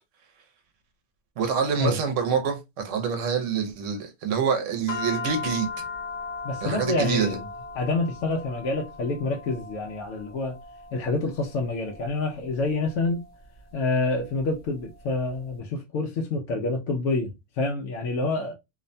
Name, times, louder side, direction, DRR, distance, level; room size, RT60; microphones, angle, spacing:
voice 1, 1.4-2.6 2.8-5.7 6.6-7.4, right 6 dB, 85° right, 1.0 m, -26 dB
sound 1, 4.9-15.4, left 4 dB, 55° left, 0.5 m, -39 dB
voice 2, 6.4-7.4 7.8-10.6 10.9-13.2 13.7-18.6, left 3 dB, 80° left, 0.9 m, -27 dB
2.8 x 2.1 x 2.5 m
omnidirectional pair, 1.2 m